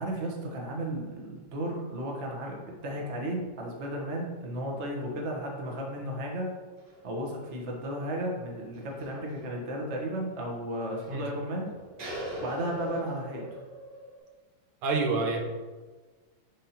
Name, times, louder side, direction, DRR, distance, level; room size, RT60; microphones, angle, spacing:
voice 1, 0.0-6.5 7.0-11.7 12.4-13.6, right 1 dB, 40° right, -1 dB, 1.1 m, -34 dB
sound 1, 6.1-6.2 6.8-7.1 7.4-7.5 7.9-8.0 8.6-9.5 10.2-10.3 10.6-14.2, equal, 65° right, 2.0 m, -42 dB
voice 2, 14.8-15.4, right 3 dB, 80° right, 2 dB, 1.7 m, -27 dB
11.0 x 3.7 x 2.8 m, 1.4 s
omnidirectional pair, 2.3 m